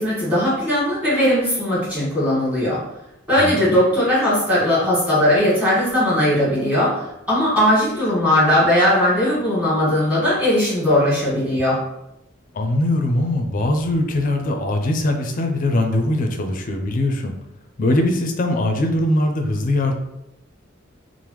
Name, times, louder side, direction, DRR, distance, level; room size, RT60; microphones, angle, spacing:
voice 1, 0.0-2.8 3.3-11.8, left 1 dB, 5° right, -9 dB, 1.4 m, -18 dB
voice 2, 3.4-3.8 12.5-17.3 17.8-19.9, left 1 dB, 45° left, 4 dB, 0.4 m, -21 dB
3.4 x 2.0 x 3.0 m, 0.88 s
head